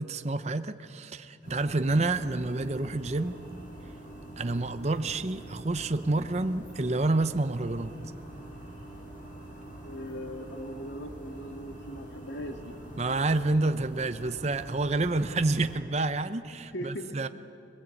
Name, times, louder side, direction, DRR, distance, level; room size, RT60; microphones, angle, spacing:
voice 1, 0.0-3.4 4.4-7.9 13.0-17.3, right 2 dB, 35° right, 10 dB, 0.7 m, -28 dB
sound 1, 1.4-15.8, right 1 dB, 45° left, 6.0 m, -45 dB
voice 2, 9.8-12.8 16.7-17.2, equal, 75° left, 4 dB, 1.9 m, -39 dB
25.5 x 19.0 x 8.4 m, 2.6 s
head